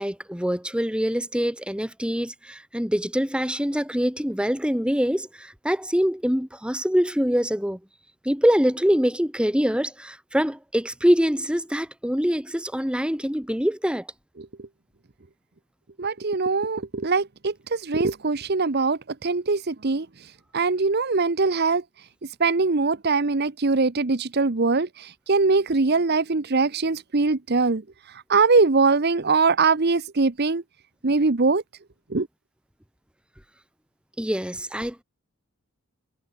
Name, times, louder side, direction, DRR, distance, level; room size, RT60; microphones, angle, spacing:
voice 1, 0.0-7.8 8.2-14.1 34.2-35.0, equal, 5° right, 2.2 m, -24 dB
voice 2, 16.0-20.1 20.5-21.8 22.4-27.8 28.3-30.6 31.0-31.6 32.1-32.3, right 4 dB, 50° right, 0.9 m, -22 dB
head